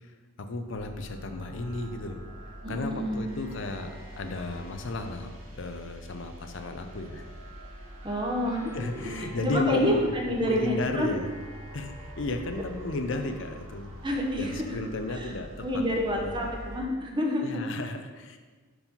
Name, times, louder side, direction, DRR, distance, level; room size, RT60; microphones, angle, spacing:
voice 1, 0.0-7.2 8.7-10.0 10.4-11.3 11.7-14.0 14.4-15.8 16.1-16.5 17.4-18.4, left 2 dB, 60° left, 6 dB, 0.5 m, -34 dB
sound 1, 0.7-16.8, equal, 75° right, 1.4 m, -44 dB
voice 2, 2.6-3.2 8.0-8.8 9.0-9.1 9.4-11.1 14.0-14.8 15.1-15.3 15.6-17.6, left 1 dB, 20° right, 0 dB, 0.8 m, -28 dB
5.4 x 4.8 x 5.3 m, 1.4 s
head